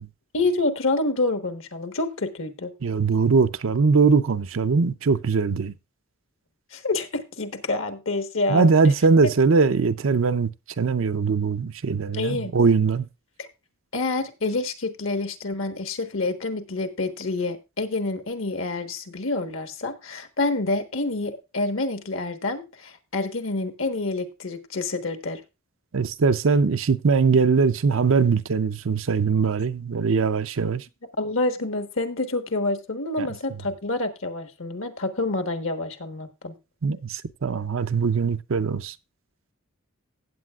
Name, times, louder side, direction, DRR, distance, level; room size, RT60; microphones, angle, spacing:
voice 1, 0.3-2.7 6.7-8.7 12.1-12.5 13.4-13.5 13.9-25.4 31.2-36.5, left 2 dB, 65° left, 1.3 m, -27 dB
voice 2, 2.8-5.7 8.5-10.5 10.8-13.1 25.9-30.8 33.2-33.3 36.8-38.9, right 5 dB, 65° right, 0.5 m, -21 dB
15.5 x 8.3 x 2.4 m
head